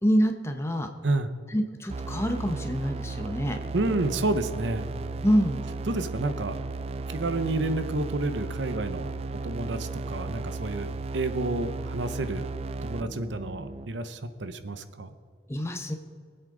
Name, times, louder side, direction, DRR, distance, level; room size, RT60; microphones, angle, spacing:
voice 1, 0.0-0.9 1.5-3.6 5.2-5.6 15.5-16.0, equal, 15° left, 6 dB, 0.9 m, -26 dB
sound 1, 1.9-13.9, right 3 dB, 35° right, 0.3 m, -35 dB
voice 2, 3.7-4.9 5.9-6.6 7.1-9.1 9.4-12.5 12.8-15.1, right 2 dB, 80° right, 11 dB, 0.8 m, -30 dB
22.5 x 8.1 x 3.9 m, 2.2 s
head